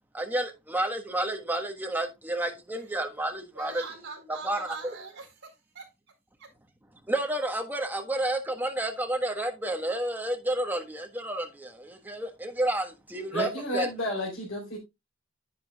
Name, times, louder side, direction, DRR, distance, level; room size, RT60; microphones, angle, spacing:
voice 1, 0.1-3.8 4.3-4.7 7.1-13.9, right 1 dB, 10° right, 1.4 m, -30 dB
voice 2, 3.5-5.9 6.4-6.5, right 4 dB, 55° right, 4.3 m, -42 dB
voice 3, 13.3-14.8, left 1 dB, 65° left, 3.9 m, -31 dB
10.5 x 8.6 x 2.3 m
head